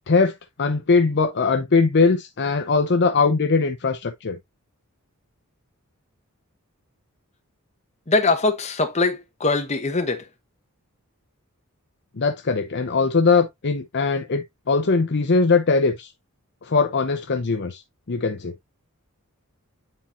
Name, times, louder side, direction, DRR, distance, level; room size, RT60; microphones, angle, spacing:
voice 1, 0.1-4.4 12.2-16.1 16.6-17.8 18.1-18.5, left 4 dB, 50° left, 0.7 m, -21 dB
voice 2, 8.1-10.2, left 3 dB, 30° left, 1.1 m, -22 dB
9.5 x 4.3 x 2.5 m
head